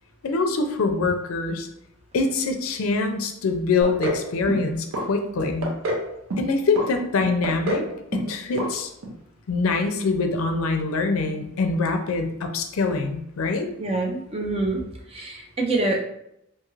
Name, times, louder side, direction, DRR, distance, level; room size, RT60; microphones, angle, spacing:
voice 1, 0.2-1.7 2.1-5.7 6.4-7.9 8.1-8.9 9.5-13.7, left 3 dB, 75° left, 5 dB, 0.4 m, -24 dB
sound 1, 3.8-4.2 4.5-5.1 5.4-6.0 6.3-6.9 7.2-7.9 8.1-8.3 8.6-8.7 9.0-9.1, right 1 dB, 80° right, 0.6 m, -27 dB
voice 2, 13.8-14.8 15.1-16.0, right 2 dB, 25° right, 0 dB, 0.4 m, -25 dB
2.6 x 2.4 x 3.0 m, 0.78 s
head